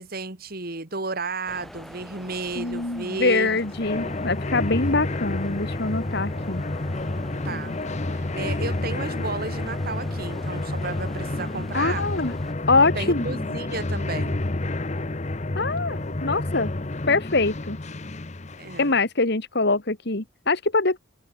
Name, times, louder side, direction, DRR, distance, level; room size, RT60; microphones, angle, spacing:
voice 1, 0.0-3.6 4.0-4.2 4.8-5.1 7.4-7.8 8.1-12.2 12.9-14.4 16.1-16.2 18.6-18.9, right 3 dB, 50° right, 2.4 m, -33 dB
sound 1, 1.5-12.5, equal, ahead, 4.1 m, -44 dB
voice 2, 2.6-6.6 11.7-12.3 12.7-13.3 15.6-16.7 17.1-17.8 18.8-21.0, left 3 dB, 55° left, 2.0 m, -23 dB
sound 2, 3.2-19.0, left 2 dB, 35° left, 1.0 m, -30 dB
open air
head